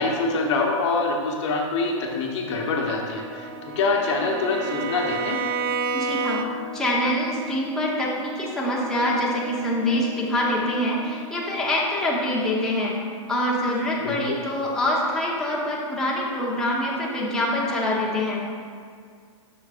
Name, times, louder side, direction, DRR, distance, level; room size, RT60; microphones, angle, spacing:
voice 1, 0.0-5.4 14.0-14.2, left 3 dB, 55° left, 0 dB, 1.0 m, -25 dB
Organ, 1.6-12.3, left 1 dB, 15° right, 1.6 m, -44 dB
Bowed string instrument, 3.0-6.8, right 5 dB, 40° right, 0.4 m, -30 dB
voice 2, 5.9-6.4 6.7-12.9 13.3-18.4, left 1 dB, 5° left, -6 dB, 1.0 m, -25 dB
7.9 x 6.0 x 2.5 m, 2.1 s
hypercardioid pair, 135°, 17 cm